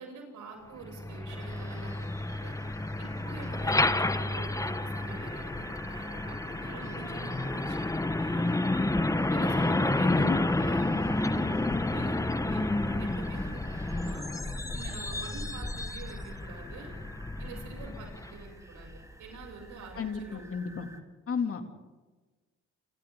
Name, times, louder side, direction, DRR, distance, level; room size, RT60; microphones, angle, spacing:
voice 1, 0.0-1.9 2.3-2.5 3.0-8.5 9.3-11.7 11.9-14.3 14.7-16.9 17.4-18.9 19.2-20.4, right 4 dB, 80° right, 1 dB, 7.7 m, -46 dB
Truck, 0.8-18.5, left 2 dB, 10° left, 1.0 m, -30 dB
sound 1, 1.3-21.0, right 1 dB, 10° right, 2.4 m, -48 dB
voice 2, 9.9-10.4 20.0-20.9 21.3-21.7, left 5 dB, 50° left, 5 dB, 2.8 m, -33 dB
29.0 x 28.5 x 3.9 m, 1.3 s
cardioid pair, 90°, 30 cm